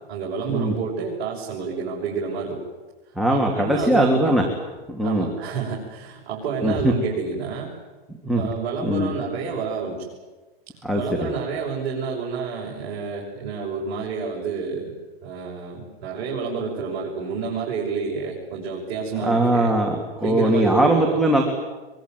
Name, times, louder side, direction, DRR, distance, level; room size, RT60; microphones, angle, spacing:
voice 1, 0.1-2.6 3.3-4.2 5.0-7.7 8.3-10.0 10.9-14.9 15.2-19.7 20.1-21.2, right 5 dB, 40° right, -4 dB, 6.4 m, -29 dB
voice 2, 3.1-4.4 4.9-5.3 6.6-6.9 8.2-8.5 8.8-9.1 10.8-11.3 19.2-21.4, right 1 dB, ahead, -1 dB, 2.8 m, -20 dB
24.0 x 23.0 x 9.3 m, 1.2 s
hypercardioid pair, 140°, 31 cm